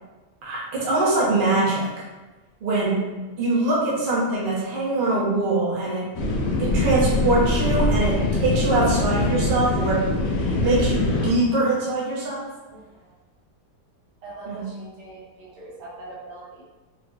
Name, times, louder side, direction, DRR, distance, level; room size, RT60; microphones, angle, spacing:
voice 1, 0.4-1.9 2.6-3.0 3.4-6.1 6.6-10.0 10.6-12.4 14.5-14.6, right 2 dB, 40° right, -6 dB, 0.8 m, -23 dB
sound 1, 6.1-11.3, left 2 dB, 85° left, 0.6 m, -23 dB
voice 2, 12.7-13.1 14.2-16.6, right 2 dB, 85° right, -6 dB, 1.6 m, -42 dB
3.7 x 2.7 x 2.4 m, 1.2 s
omnidirectional pair, 1.8 m